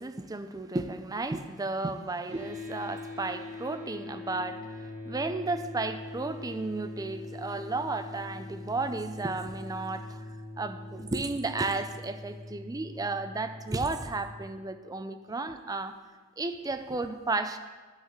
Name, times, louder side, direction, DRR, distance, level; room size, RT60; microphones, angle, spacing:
voice 1, 0.0-10.2 10.6-15.9 16.4-17.6, right 3 dB, 15° right, 9 dB, 0.4 m, -33 dB
sound 1, 2.3-14.4, left 2 dB, 35° right, 1.2 m, -42 dB
10.0 x 4.1 x 6.4 m, 1.4 s
head